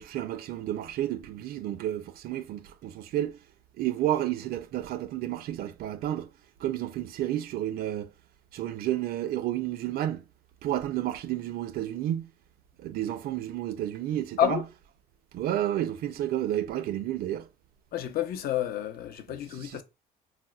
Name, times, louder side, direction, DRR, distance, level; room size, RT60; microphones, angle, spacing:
voice 1, 0.0-3.4 3.8-6.3 6.6-8.1 8.5-10.2 10.6-12.3 12.8-14.6 15.3-17.5 19.6-19.8, right 12 dB, 65° right, 0.4 m, -31 dB
voice 2, 17.9-19.8, left 10 dB, 65° left, 0.5 m, -29 dB
4.1 x 2.0 x 2.3 m
cardioid pair, 110°, 17 cm